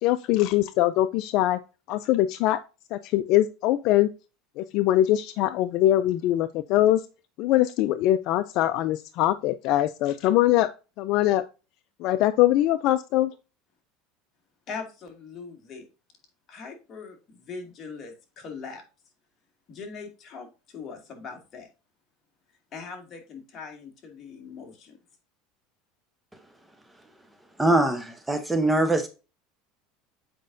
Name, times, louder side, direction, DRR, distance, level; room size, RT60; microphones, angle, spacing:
voice 1, 0.0-1.6 1.9-2.6 2.9-4.1 4.6-7.0 7.4-10.7 11.0-11.4 12.0-13.3, left 14 dB, 55° left, 0.4 m, -22 dB
voice 2, 14.7-15.9 16.5-18.8 19.7-20.5 20.7-21.7 22.7-25.0, left 5 dB, 35° left, 2.2 m, -41 dB
voice 3, 27.6-29.1, right 2 dB, 5° right, 0.8 m, -22 dB
7.6 x 5.1 x 2.6 m
supercardioid pair, 130°, 0 cm